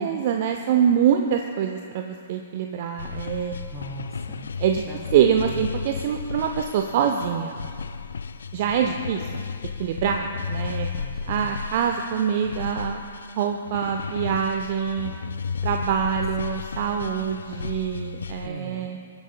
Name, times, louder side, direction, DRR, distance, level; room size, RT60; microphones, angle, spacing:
voice 1, 0.0-3.5 4.6-4.8 5.1-7.5 8.5-9.4 9.8-10.9 11.3-13.0 13.4-15.1 15.6-19.0, right 8 dB, 45° right, 4 dB, 0.6 m, -24 dB
sound 1, 3.0-18.5, left 5 dB, 70° left, 0.4 m, -34 dB
voice 2, 3.7-4.5 4.8-5.0 5.4-5.6 10.9-11.6 18.4-18.9, right 1 dB, 20° right, -2 dB, 3.1 m, -40 dB
24.5 x 10.5 x 2.2 m, 2.3 s
figure-of-eight pair, 115°, 0 cm